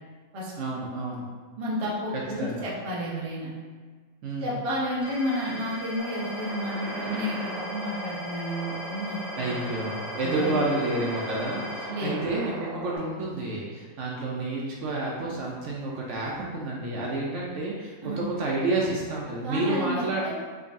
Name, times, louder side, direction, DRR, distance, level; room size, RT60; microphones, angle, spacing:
voice 1, 0.6-1.2 2.4-2.6 4.2-4.6 9.4-20.3, right 2 dB, 65° right, -3 dB, 0.8 m, -30 dB
voice 2, 1.6-3.5 4.4-9.7 10.2-10.6 11.9-12.3 18.0-18.3 19.4-20.3, equal, 35° right, -6 dB, 0.6 m, -31 dB
sound 1, 5.0-11.9, left 1 dB, 70° left, 1.4 m, -39 dB
sound 2, 6.0-13.0, right 1 dB, 85° right, 1.4 m, -38 dB
3.6 x 2.9 x 2.5 m, 1.5 s
omnidirectional pair, 1.4 m